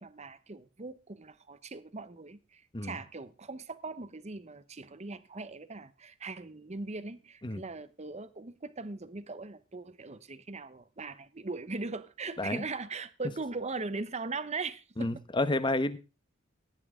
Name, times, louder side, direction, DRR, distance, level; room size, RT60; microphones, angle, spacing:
voice 1, 0.0-15.2, right 3 dB, 30° right, 0.9 m, -40 dB
voice 2, 15.0-16.0, left 2 dB, 25° left, 1.0 m, -30 dB
16.5 x 10.5 x 3.7 m
head